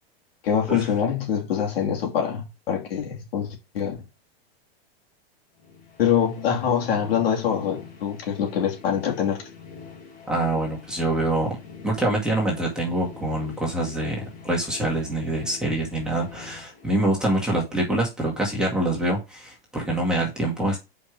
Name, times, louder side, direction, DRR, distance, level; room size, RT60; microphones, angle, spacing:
voice 1, 0.4-4.0 6.0-9.4, left 8 dB, 70° left, 3.0 m, -24 dB
sound 1, 5.6-17.5, left 5 dB, 35° left, 2.9 m, -45 dB
voice 2, 10.3-11.6 11.8-20.8, right 1 dB, ahead, 2.0 m, -25 dB
5.3 x 5.2 x 6.4 m
supercardioid pair, 165°, 30 cm